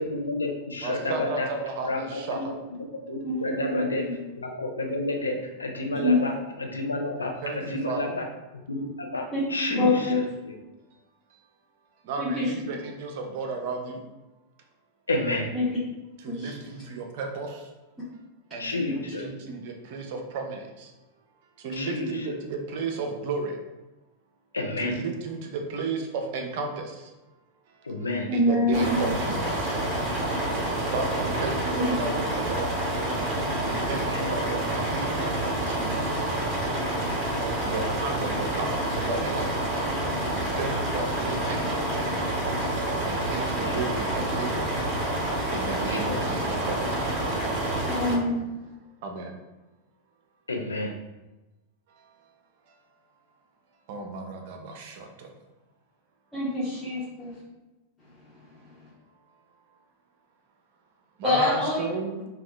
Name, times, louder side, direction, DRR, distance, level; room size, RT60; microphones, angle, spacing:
voice 1, 0.1-1.5 1.9-2.0 2.3-2.4 3.1-4.1 4.4-6.3 6.6-8.2 8.7-10.0 10.4-10.5 15.1-15.5 18.6-19.3 21.8-22.1 24.5-25.0 27.9-28.3 34.1-34.2 43.6-43.8 45.9-46.1 50.5-50.9, left 2 dB, 75° left, 2 dB, 0.5 m, -30 dB
voice 2, 0.8-2.5 7.4-8.1 12.0-14.0 16.2-17.7 18.5-20.9 21.6-23.6 24.8-27.1 27.9-29.8 30.8-32.8 33.6-35.2 35.6-36.4 37.6-39.7 40.3-42.2 43.0-44.7 45.5-47.0 49.0-49.4 52.0-52.1 53.9-55.3 61.2-62.3, right 3 dB, 50° right, 3 dB, 0.5 m, -34 dB
voice 3, 3.2-4.1 6.0-6.2 9.3-9.4 9.7-10.2 12.2-12.5 15.5-15.6 16.3-16.5 28.3-28.8 47.8-48.4 56.3-57.3 61.2-61.8, left 2 dB, 10° left, -10 dB, 0.8 m, -25 dB
sound 1, 28.7-48.1, right 1 dB, 30° right, 0.9 m, -28 dB
2.6 x 2.3 x 3.3 m, 1.1 s
figure-of-eight pair, 90°, 0 cm